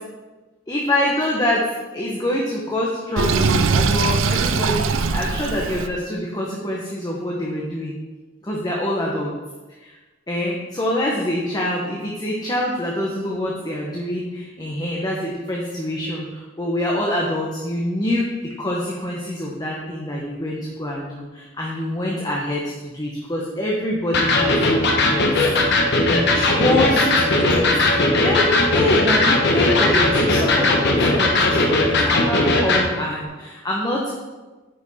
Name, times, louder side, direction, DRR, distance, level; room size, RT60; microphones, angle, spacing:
voice 1, 0.7-1.6 1.9-8.0 8.4-9.3 9.8-9.9 10.3-25.5 26.1-34.1, left 1 dB, 20° left, -3 dB, 1.0 m, -25 dB
Sink (filling or washing), 3.2-5.9, right 4 dB, 75° right, 0.5 m, -21 dB
Electric guitar, 24.1-32.9, left 2 dB, 60° left, 1.2 m, -18 dB
9.1 x 5.2 x 4.2 m, 1.2 s
head